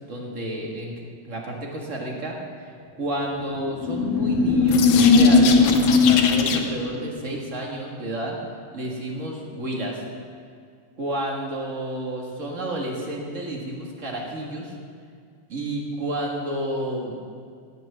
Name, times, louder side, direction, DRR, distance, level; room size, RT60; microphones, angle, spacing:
voice 1, 0.1-0.9 1.2-8.4 8.7-10.0 11.0-14.7 15.5-17.2, right 1 dB, 30° right, -1 dB, 1.6 m, -31 dB
sound 1, 3.6-6.9, left 4 dB, 70° left, 2.1 m, -17 dB
17.0 x 6.1 x 7.4 m, 2.2 s
omnidirectional pair, 3.3 m